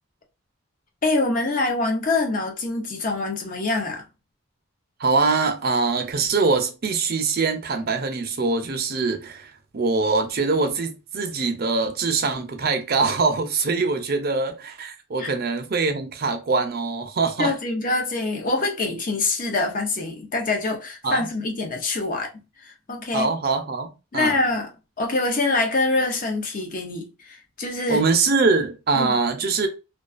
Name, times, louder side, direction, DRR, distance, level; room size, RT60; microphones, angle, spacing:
voice 1, 1.0-4.1 15.2-15.3 17.4-22.3 22.6-23.3 24.1-24.7 25.0-28.1 29.0-29.1, left 2 dB, 40° left, 0.5 m, -25 dB
voice 2, 5.0-17.5 21.0-21.3 23.1-24.4 27.9-29.7, right 4 dB, 45° right, 0.5 m, -23 dB
2.3 x 2.3 x 2.4 m
head